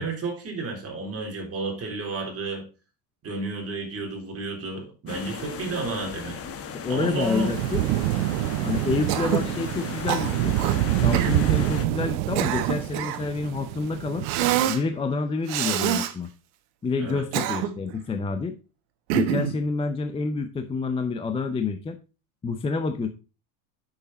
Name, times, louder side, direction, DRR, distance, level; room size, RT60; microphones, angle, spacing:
voice 1, 0.0-2.7 3.2-6.4 6.9-7.5 17.0-17.2, right 3 dB, 30° right, 1 dB, 3.6 m, -31 dB
sound 1, 5.1-11.9, left 6 dB, 30° left, 1.2 m, -36 dB
voice 2, 6.7-7.8 8.6-10.6 11.0-14.3 14.7-16.3 16.8-18.6 19.1-22.0 22.4-23.1, left 4 dB, 10° left, 7 dB, 0.5 m, -28 dB
sound 2, 7.2-14.7, right 18 dB, 90° right, 0.6 m, -27 dB
Cough, 9.1-9.5 10.1-10.8 11.1-11.4 12.1-13.3 14.2-14.8 15.5-16.1 17.1-17.9 19.1-19.6, right 11 dB, 70° right, 1.4 m, -26 dB
8.4 x 6.7 x 4.1 m, 0.32 s
cardioid pair, 145°, 49 cm